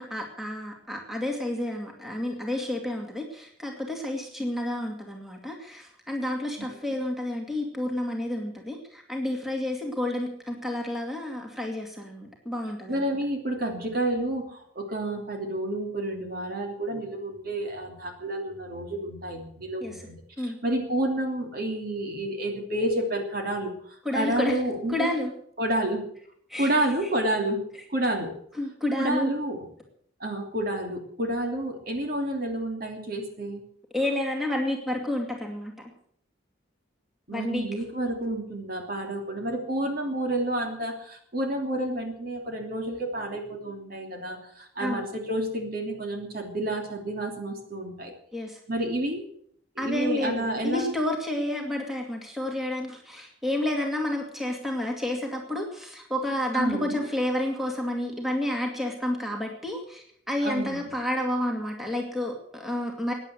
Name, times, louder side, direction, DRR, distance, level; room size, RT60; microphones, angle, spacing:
voice 1, 0.0-13.0 19.8-20.1 20.4-20.6 24.0-24.6 24.9-25.3 26.5-26.7 27.0-27.1 28.6-29.3 33.9-35.7 37.3-37.8 44.8-45.0 48.3-48.6 49.8-63.1, left 1 dB, ahead, 1 dB, 2.3 m, -30 dB
voice 2, 12.9-25.1 25.6-26.1 26.6-27.6 27.9-28.3 29.0-29.6 30.2-33.6 37.3-48.1 48.7-49.3 49.7-50.9 56.5-57.1 60.4-60.8, right 1 dB, 45° right, 3 dB, 3.0 m, -30 dB
16.0 x 10.0 x 7.7 m, 0.66 s
head